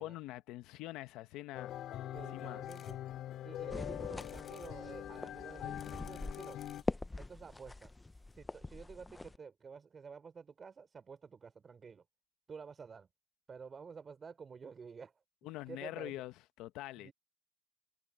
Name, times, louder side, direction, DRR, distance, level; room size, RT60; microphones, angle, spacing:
voice 1, 0.0-1.7 2.3-2.6 15.4-17.1, left 16 dB, 80° left, 0.9 m, -44 dB
sound 1, 1.5-6.8, left 12 dB, 65° left, 3.2 m, -43 dB
voice 2, 2.1-3.0 3.4-6.9 7.2-12.0 12.5-13.1 13.5-15.1 15.7-16.2 17.0-17.1, right 5 dB, 30° right, 3.9 m, -51 dB
sound 2, 2.7-3.0 3.5-3.6 4.1-4.7 5.5-6.9 7.7-7.8 8.0-8.1 8.3-8.4, left 7 dB, 35° left, 4.9 m, -61 dB
sound 3, 3.7-9.4, left 2 dB, 10° left, 0.6 m, -43 dB
cardioid pair, 125°, 0 cm